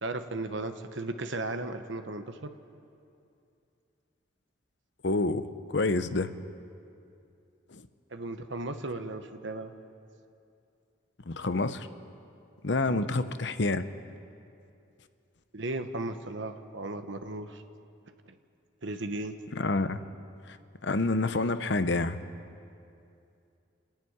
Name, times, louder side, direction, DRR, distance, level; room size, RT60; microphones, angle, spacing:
voice 1, 0.0-2.5 8.1-9.7 12.9-13.1 15.5-17.6 18.8-19.3, right 2 dB, 70° right, 8 dB, 1.0 m, -36 dB
voice 2, 5.0-5.4 5.7-6.3 7.7-7.8 11.3-11.9 12.6-13.9 19.5-20.0 20.5-20.6 20.8-22.2, left 2 dB, 60° left, 11 dB, 0.8 m, -28 dB
27.5 x 10.5 x 9.5 m, 2.6 s
head